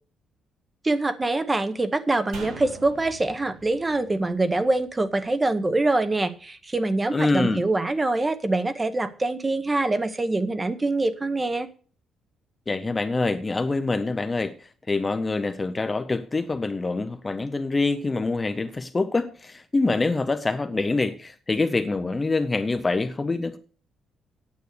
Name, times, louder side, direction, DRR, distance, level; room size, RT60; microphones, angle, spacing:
voice 1, 0.8-11.7, right 2 dB, 15° right, 0.8 m, -24 dB
sound 1, 2.3-5.7 6.0-6.1, right 4 dB, 90° right, 3.5 m, -43 dB
voice 2, 7.1-7.6 12.7-14.5 14.9-23.6, left 3 dB, 20° left, 0.6 m, -25 dB
9.4 x 8.0 x 6.7 m
cardioid pair, 150°, 0 cm